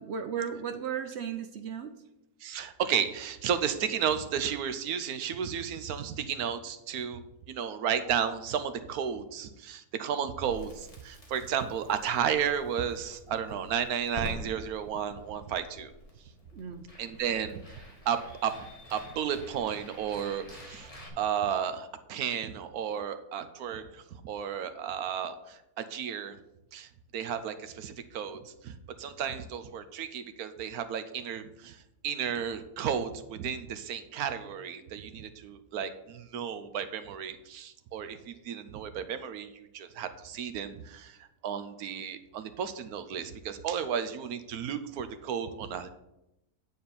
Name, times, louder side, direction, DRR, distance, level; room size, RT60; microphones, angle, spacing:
voice 1, 0.0-1.9 16.5-16.9 17.2-17.3, right 7 dB, 60° right, 7 dB, 0.7 m, -35 dB
voice 2, 2.4-7.2 7.5-15.9 17.0-17.8 18.1-18.6 18.9-26.4 26.7-45.9, right 8 dB, 75° right, 11 dB, 1.2 m, -33 dB
Crackle, 10.3-21.1, right 1 dB, 25° left, 1.8 m, -47 dB
9.5 x 4.3 x 6.8 m, 0.89 s
omnidirectional pair, 1.6 m